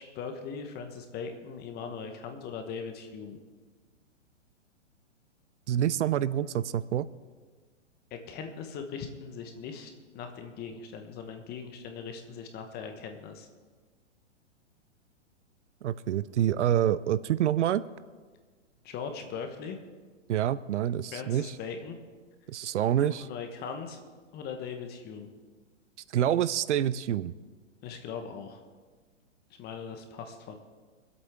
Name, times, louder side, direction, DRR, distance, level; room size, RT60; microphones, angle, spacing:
voice 1, 0.0-3.4 8.1-13.5 18.8-19.8 21.1-22.0 23.0-24.0 24.3-25.3 27.8-28.6 29.6-30.6, left 6 dB, 25° left, 5 dB, 1.3 m, -40 dB
voice 2, 5.7-7.1 15.8-17.8 20.3-21.5 22.5-23.3 26.1-27.3, right 11 dB, 70° right, 17 dB, 0.6 m, -27 dB
24.5 x 8.3 x 3.7 m, 1.4 s
hypercardioid pair, 130°, 37 cm